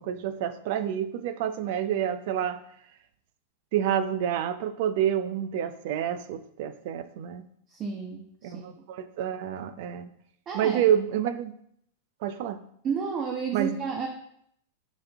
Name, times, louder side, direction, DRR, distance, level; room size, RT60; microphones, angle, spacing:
voice 1, 0.0-2.6 3.7-7.4 8.4-10.1 10.5-11.5 12.2-12.6 13.5-13.8, right 9 dB, 60° right, 12 dB, 0.6 m, -28 dB
voice 2, 7.7-8.8 10.5-10.8 12.8-14.1, right 6 dB, 35° right, 3 dB, 0.9 m, -32 dB
9.1 x 4.1 x 3.5 m, 0.70 s
hypercardioid pair, 110°, 0 cm